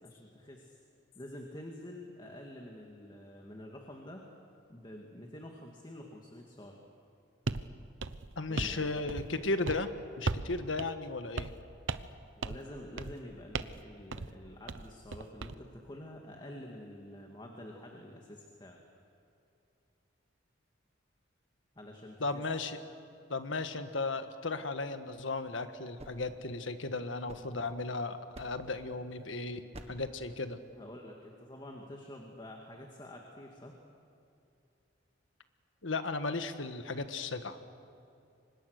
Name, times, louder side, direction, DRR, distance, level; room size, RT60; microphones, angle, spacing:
voice 1, 0.0-0.8 1.1-4.3 4.7-6.8 8.5-9.1 12.4-18.8 21.8-22.4 30.7-33.8, left 1 dB, 25° left, 1 dB, 2.1 m, -48 dB
sound 1, 7.5-7.7 8.0-8.8 9.1-9.4 9.7-9.9 10.3-10.5 10.8-10.9 11.4-11.6 11.9-12.2 12.4-12.7 13.0-13.2 13.5-13.8 14.1-14.3 14.7-15.6, right 3 dB, 85° right, 0.8 m, -36 dB
voice 2, 8.4-9.9 10.2-11.5 22.2-22.8 23.3-29.6 29.9-30.6 35.8-37.6, left 3 dB, 80° left, 9 dB, 1.6 m, -35 dB
sound 2, 26.0-27.9 28.3-28.8 29.7-30.2, right 1 dB, 35° right, 1.6 m, -52 dB
30.0 x 25.0 x 6.7 m, 2.6 s
head